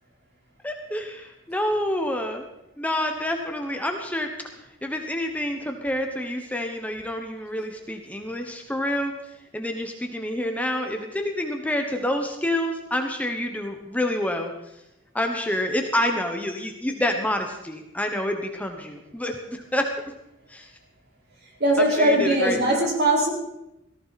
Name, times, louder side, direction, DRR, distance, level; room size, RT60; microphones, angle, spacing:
voice 1, 0.6-2.4 2.8-4.3 4.8-9.1 9.5-14.5 15.1-19.9 20.5-20.7 21.8-22.6, left 1 dB, 5° left, 4 dB, 1.1 m, -28 dB
voice 2, 21.6-23.3, right 1 dB, 55° right, -2 dB, 4.6 m, -20 dB
17.5 x 14.5 x 4.2 m, 0.88 s
head